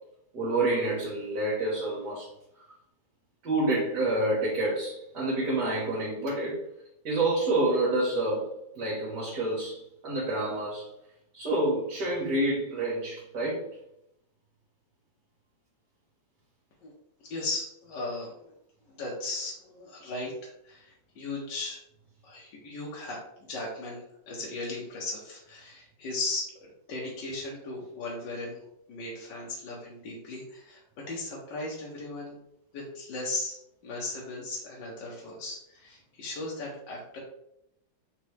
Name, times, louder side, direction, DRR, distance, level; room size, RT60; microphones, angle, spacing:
voice 1, 0.3-2.3 3.4-6.6 7.0-8.4 8.8-10.9 11.3-13.7, right 2 dB, 70° right, -6 dB, 1.9 m, -28 dB
voice 2, 17.2-18.5 18.9-21.8 22.2-26.5 26.9-28.6 28.9-32.4 32.7-37.2, left 2 dB, 80° left, -4 dB, 1.5 m, -37 dB
4.3 x 3.0 x 3.2 m, 0.79 s
omnidirectional pair, 1.9 m